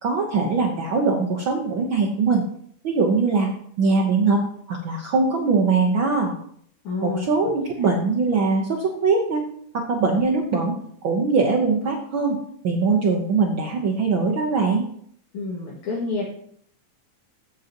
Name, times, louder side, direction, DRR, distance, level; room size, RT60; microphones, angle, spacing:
voice 1, 0.0-2.4 2.8-3.5 3.8-4.4 4.7-6.4 7.0-9.4 9.7-10.7 11.0-12.4 12.6-14.9, right 4 dB, 85° right, -1 dB, 1.1 m, -21 dB
voice 2, 6.8-7.3 7.8-7.9 10.2-10.3 15.3-16.2, left 3 dB, 65° left, -4 dB, 2.9 m, -28 dB
14.5 x 6.4 x 2.9 m, 0.64 s
omnidirectional pair, 3.8 m